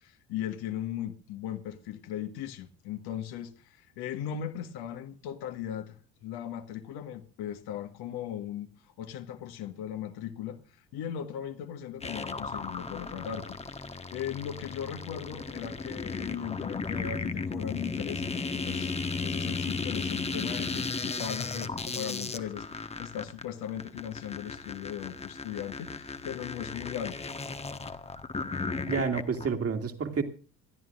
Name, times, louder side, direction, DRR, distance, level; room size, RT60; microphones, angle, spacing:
voice 1, 0.0-6.0 6.2-10.6 10.9-13.6 13.9-27.2, left 10 dB, 50° left, 1.5 m, -38 dB
sound 1, 12.0-29.5, left 4 dB, 15° left, 1.2 m, -35 dB
voice 2, 28.9-30.2, right 5 dB, 30° right, 2.2 m, -29 dB
27.0 x 12.5 x 2.5 m
figure-of-eight pair, 60°, 49 cm